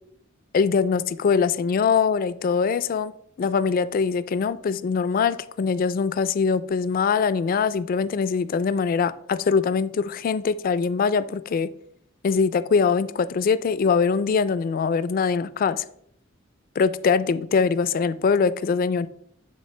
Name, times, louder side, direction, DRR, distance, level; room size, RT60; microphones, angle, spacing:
voice 1, 0.5-3.1 3.4-11.7 12.2-15.8 16.8-19.1, left 5 dB, 45° left, 15 dB, 0.3 m, -22 dB
9.3 x 4.0 x 3.2 m, 0.69 s
head